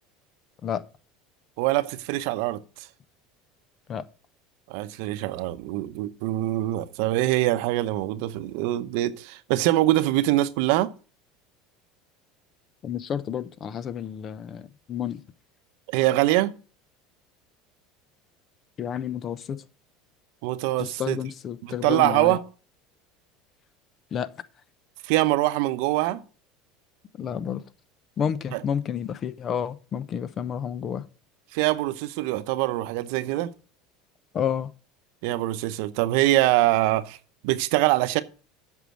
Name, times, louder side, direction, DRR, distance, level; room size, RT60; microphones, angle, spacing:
voice 1, 1.6-2.6 4.7-10.9 15.9-16.5 20.4-21.2 21.6-22.4 25.0-26.2 28.5-28.6 31.5-33.5 35.2-37.2 37.4-38.2, right 16 dB, 70° right, 0.7 m, -24 dB
voice 2, 12.8-15.2 18.8-19.6 20.8-22.4 24.1-24.3 27.2-27.6 28.2-31.1 34.3-34.7, left 8 dB, 40° left, 0.8 m, -30 dB
8.2 x 5.5 x 7.6 m
hypercardioid pair, 90°, 0 cm